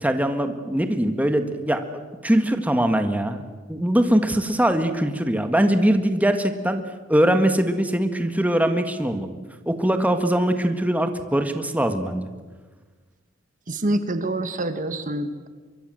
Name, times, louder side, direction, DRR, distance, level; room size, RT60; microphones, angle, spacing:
voice 1, 0.0-1.8 2.2-3.4 3.7-6.8 7.1-9.3 9.7-12.3, right 1 dB, 10° right, 7 dB, 1.6 m, -21 dB
voice 2, 13.7-15.5, right 1 dB, 45° right, 10 dB, 1.3 m, -26 dB
24.0 x 23.5 x 7.7 m, 1.3 s
head